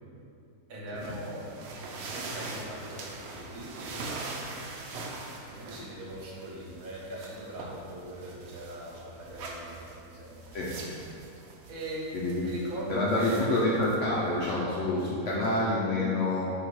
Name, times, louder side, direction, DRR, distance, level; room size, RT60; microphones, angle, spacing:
voice 1, 0.7-4.4 5.4-10.6 11.7-13.4 15.3-15.7, right 1 dB, 65° right, -4 dB, 1.1 m, -41 dB
sound 1, 1.0-14.6, right 3 dB, 85° right, 0.6 m, -43 dB
voice 2, 12.9-16.4, left 2 dB, 65° left, -5 dB, 0.7 m, -27 dB
4.1 x 2.8 x 4.5 m, 2.5 s
omnidirectional pair, 1.7 m